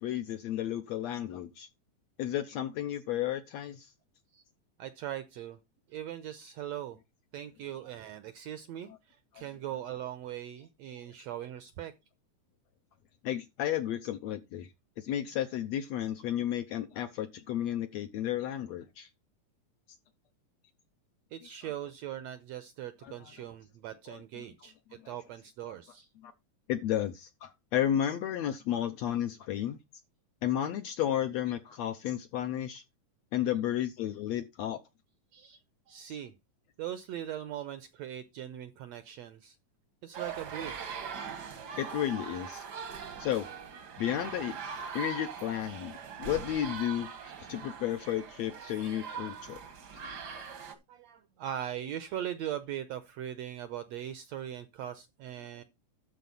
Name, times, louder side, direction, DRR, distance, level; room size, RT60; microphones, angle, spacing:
voice 1, 0.0-1.7 2.2-3.9 13.2-14.7 15.0-19.1 23.0-23.1 24.1-24.2 26.2-26.3 26.7-29.8 30.4-32.8 33.3-34.8 41.8-42.6 43.2-43.5 44.0-44.5 44.9-47.1 47.5-49.6, left 11 dB, 75° left, 1.6 m, -32 dB
voice 2, 4.8-5.6 5.9-7.0 7.3-11.9 21.3-26.1 35.3-35.6 35.9-36.3 36.8-39.6 40.0-41.0 50.3-55.6, right 11 dB, 80° right, 1.6 m, -40 dB
sound 1, 40.1-50.7, right 6 dB, 60° right, 1.0 m, -41 dB
12.5 x 4.4 x 5.4 m
omnidirectional pair, 3.8 m